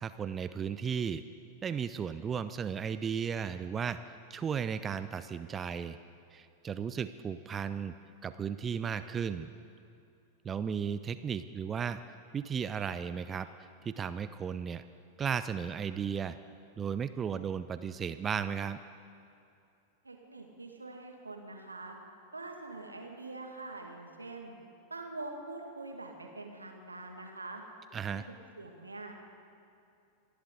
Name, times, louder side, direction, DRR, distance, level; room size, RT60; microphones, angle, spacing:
voice 1, 0.0-1.2 1.6-4.0 4.3-6.0 6.3-7.9 8.2-9.5 10.4-12.0 12.3-13.5 13.8-14.8 15.2-16.4 16.8-18.8 27.9-28.3, right 7 dB, 20° right, 12 dB, 0.4 m, -35 dB
voice 2, 20.0-22.0 22.3-24.5 24.9-27.6 28.1-29.2, right 2 dB, 80° right, 3 dB, 1.8 m, -44 dB
27.5 x 11.5 x 3.9 m, 2.6 s
figure-of-eight pair, 90°, 0 cm